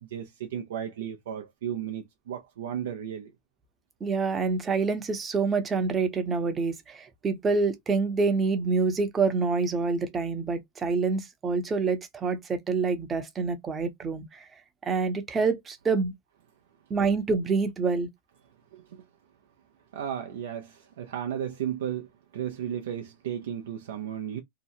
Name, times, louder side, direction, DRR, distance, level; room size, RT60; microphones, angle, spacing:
voice 1, 0.0-3.3 18.7-19.0 19.9-24.4, right 9 dB, 75° right, 0.5 m, -34 dB
voice 2, 4.0-14.4 14.8-16.1 16.9-18.1, right 4 dB, 20° right, 0.7 m, -27 dB
2.8 x 2.0 x 2.6 m
hypercardioid pair, 120°, 0 cm